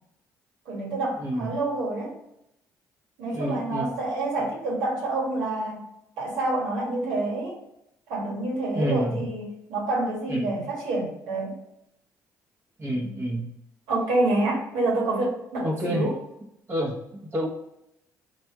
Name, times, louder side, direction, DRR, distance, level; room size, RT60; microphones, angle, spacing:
voice 1, 0.6-2.1 3.2-5.8 6.2-7.5 8.1-11.5 13.9-16.1, right 2 dB, 80° right, -4 dB, 1.5 m, -27 dB
voice 2, 3.3-4.0 8.7-9.3 10.3-10.7 12.8-13.5 15.6-16.1 16.7-17.0 17.3-17.5, equal, 35° right, -2 dB, 1.0 m, -28 dB
3.4 x 2.6 x 4.5 m, 0.82 s
supercardioid pair, 60°, 8 cm